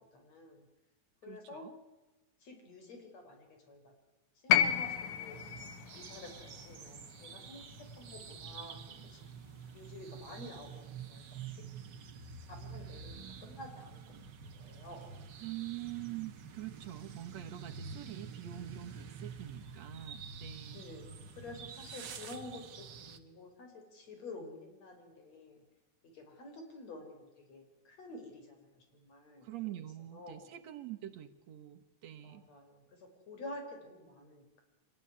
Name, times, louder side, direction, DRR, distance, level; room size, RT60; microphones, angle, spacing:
voice 1, 0.1-0.7 1.2-1.7 2.4-3.9 4.4-5.4 5.9-7.6 7.9-9.2 9.7-10.7 11.0-11.6 12.5-14.0 14.4-15.1 20.7-25.6 26.1-29.8 30.1-30.5 32.2-34.6, left 2 dB, 60° left, 4 dB, 5.5 m, -50 dB
voice 2, 1.2-1.7 15.4-20.8 29.4-32.4, right 14 dB, 65° right, 7 dB, 2.2 m, -45 dB
sound 1, 4.5-8.7 9.9-10.0, left 9 dB, 75° left, 2.4 m, -33 dB
sound 2, 4.5-23.2, right 6 dB, 50° right, 1.5 m, -48 dB
25.5 x 18.5 x 9.9 m, 1.1 s
omnidirectional pair, 3.5 m